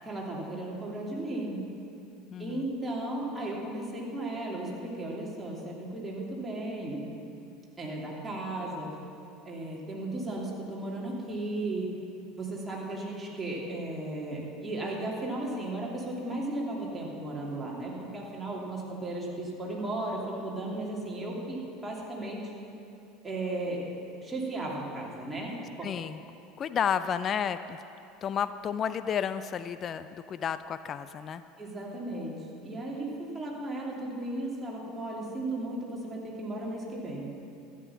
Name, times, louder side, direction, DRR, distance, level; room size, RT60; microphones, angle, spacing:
voice 1, 0.1-1.7 2.4-7.0 7.8-8.9 9.4-12.0 12.3-22.4 23.2-23.8 24.2-25.9 31.6-32.3 32.6-37.3, right 2 dB, 15° right, -4 dB, 2.9 m, -35 dB
voice 2, 2.3-2.7 21.4-21.5 25.8-26.2 26.6-27.8 28.2-31.4, left 8 dB, 35° left, 12 dB, 0.4 m, -32 dB
13.0 x 9.1 x 5.9 m, 2.7 s
figure-of-eight pair, 75°, 0 cm